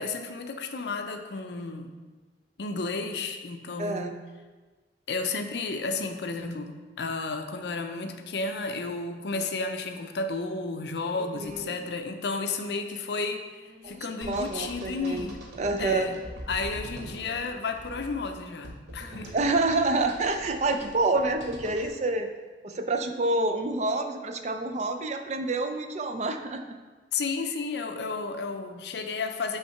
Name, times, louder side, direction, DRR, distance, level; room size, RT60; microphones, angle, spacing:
voice 1, 0.0-1.9 2.6-4.2 5.1-13.4 13.8-15.4 15.8-16.2 16.5-19.3 27.1-29.6, left 3 dB, 70° left, 6 dB, 0.5 m, -32 dB
voice 2, 3.8-4.1 11.4-11.6 13.8-15.3 15.6-16.1 19.3-22.3 22.6-26.6, right 2 dB, 40° right, 7 dB, 0.4 m, -28 dB
sound 1, 11.2-12.0 13.6-14.2 15.8-16.4 17.1-17.6 19.0-19.5 19.7-20.0, left 2 dB, 15° left, 1.5 m, -52 dB
sound 2, 14.2-21.9, right 1 dB, 75° right, 0.9 m, -43 dB
5.6 x 3.2 x 5.7 m, 1.3 s
head